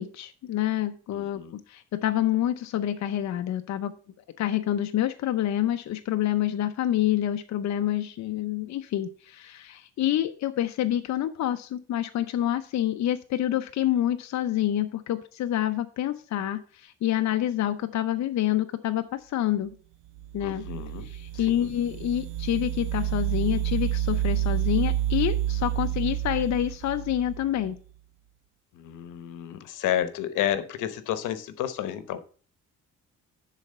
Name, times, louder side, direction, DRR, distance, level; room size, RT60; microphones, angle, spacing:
voice 1, 0.0-3.9 4.4-19.7 20.3-20.6 21.0-27.8, left 12 dB, 65° left, 8 dB, 0.7 m, -27 dB
voice 2, 1.1-1.5 20.4-21.1 21.5-21.7 28.7-32.2, left 11 dB, 90° left, 12 dB, 1.0 m, -31 dB
sound 1, 20.2-27.7, right 12 dB, 80° right, 0.6 m, -29 dB
10.5 x 4.1 x 5.4 m, 0.42 s
cardioid pair, 90°, 30 cm